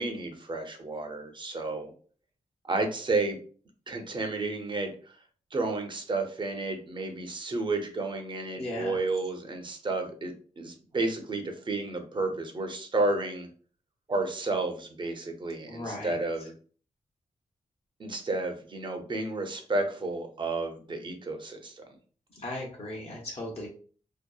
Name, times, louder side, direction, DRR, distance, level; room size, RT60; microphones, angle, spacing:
voice 1, 0.0-1.9 2.6-3.4 3.9-4.9 5.5-13.5 14.1-16.5 18.0-21.8, right 2 dB, 35° right, 5 dB, 0.6 m, -31 dB
voice 2, 8.6-9.0 15.7-16.1 22.3-23.7, left 1 dB, 50° left, -2 dB, 0.7 m, -37 dB
2.7 x 2.0 x 2.3 m, 0.43 s
cardioid pair, 70°, 13 cm